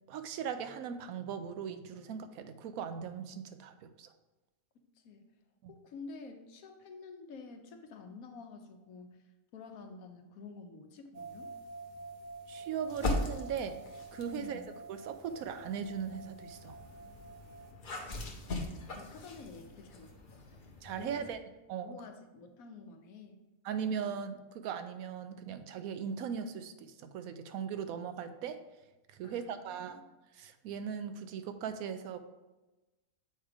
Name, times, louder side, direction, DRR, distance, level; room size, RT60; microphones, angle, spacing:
voice 1, 0.1-4.1 5.6-5.7 12.5-13.8 14.1-14.6 14.9-16.8 20.8-21.4 21.7-21.9 23.6-28.6 29.1-30.0 30.3-32.2, right 7 dB, 80° right, 9 dB, 1.0 m, -39 dB
voice 2, 4.7-5.2 5.7-11.5 14.4-14.7 18.5-20.2 20.5-20.6 21.0-21.3 21.8-23.4 23.8-24.1 29.2-30.0, left 4 dB, 80° left, 5 dB, 1.2 m, -50 dB
sound 1, 11.1-17.7, right 3 dB, 65° right, 0.4 m, -49 dB
sound 2, 12.9-14.5 15.1-21.3, left 2 dB, 40° left, 0.9 m, -40 dB
7.2 x 4.7 x 3.4 m, 1.1 s
omnidirectional pair, 1.5 m